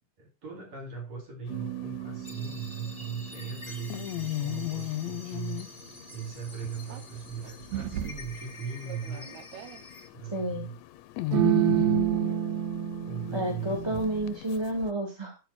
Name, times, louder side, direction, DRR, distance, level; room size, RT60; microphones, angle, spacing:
voice 1, 0.2-5.6 6.1-9.3 10.1-10.8 11.3-12.0 13.1-14.1, right 6 dB, 60° right, 2 dB, 3.4 m, -39 dB
sound 1, 1.5-14.9, left 15 dB, 80° left, 1.9 m, -39 dB
sound 2, 1.5-3.9 6.9-7.0 7.7-8.3 8.9-9.8 11.3-14.4, right 11 dB, 80° right, 2.1 m, -30 dB
sound 3, 2.2-10.1, left 1 dB, 15° left, 2.8 m, -48 dB
voice 2, 10.3-10.7 13.3-15.4, right 1 dB, 10° right, 0 dB, 1.8 m, -30 dB
12.5 x 4.6 x 4.3 m, 0.28 s
omnidirectional pair, 3.4 m